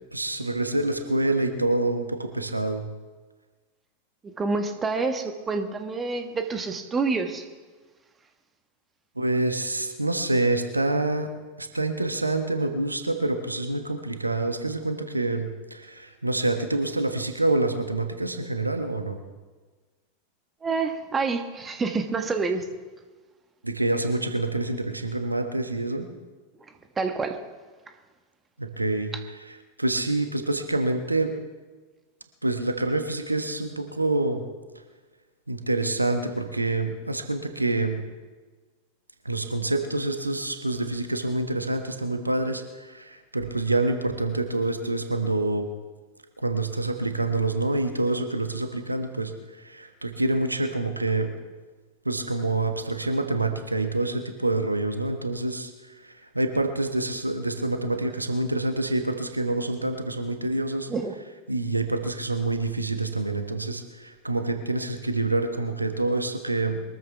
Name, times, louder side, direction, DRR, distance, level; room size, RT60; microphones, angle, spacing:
voice 1, 0.1-2.8 9.2-11.3 11.6-19.2 23.6-26.1 28.6-29.1 29.8-31.3 32.4-34.4 35.5-38.0 39.2-45.7 46.4-49.3 49.6-51.3 52.0-55.7 56.3-60.9 61.5-66.8, right 2 dB, 85° right, 1.3 m, -27 dB
voice 2, 4.2-7.4 20.6-22.7 27.0-27.4 60.9-61.2, right 4 dB, 20° right, 1.4 m, -27 dB
22.5 x 14.0 x 3.5 m
figure-of-eight pair, 90°, 0 cm